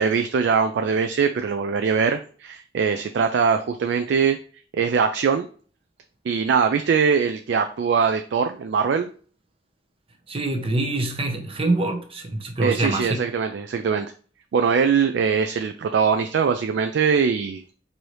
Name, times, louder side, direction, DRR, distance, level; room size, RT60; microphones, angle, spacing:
voice 1, 0.0-4.4 4.8-5.5 6.3-9.1 12.6-14.1 14.5-17.6, right 6 dB, 65° right, 0.3 m, -22 dB
voice 2, 10.3-13.1, right 2 dB, 30° right, 0.7 m, -25 dB
4.7 x 2.7 x 3.1 m
head